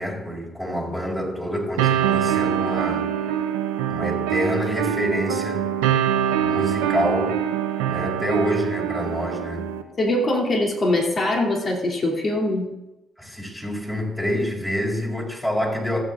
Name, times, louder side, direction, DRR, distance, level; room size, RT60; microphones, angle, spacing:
voice 1, 0.0-3.1 3.9-5.8 6.4-7.4 7.9-9.7 13.2-16.0, equal, 15° left, -1 dB, 4.1 m, -27 dB
sound 1, 1.8-9.8, right 10 dB, 90° right, 0.9 m, -24 dB
voice 2, 10.0-12.7, left 1 dB, 50° left, 0 dB, 2.8 m, -22 dB
19.0 x 8.1 x 3.8 m, 0.99 s
hypercardioid pair, 50°, 0 cm